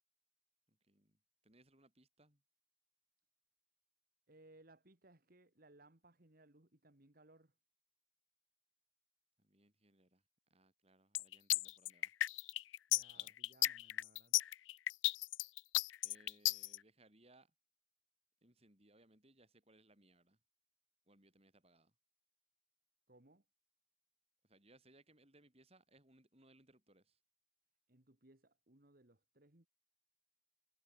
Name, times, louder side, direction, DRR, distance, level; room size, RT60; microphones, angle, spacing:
voice 1, 0.7-2.4 9.4-10.2 10.5-12.1 13.1-13.4 16.0-17.5 18.4-20.4 21.1-21.9 24.4-27.2, right 1 dB, 30° right, 6.5 m, -68 dB
voice 2, 4.3-7.5 12.9-14.4 23.1-23.4 27.9-29.7, right 2 dB, 50° right, 2.1 m, -65 dB
sound 1, 11.1-16.8, left 17 dB, 75° left, 0.4 m, -34 dB
head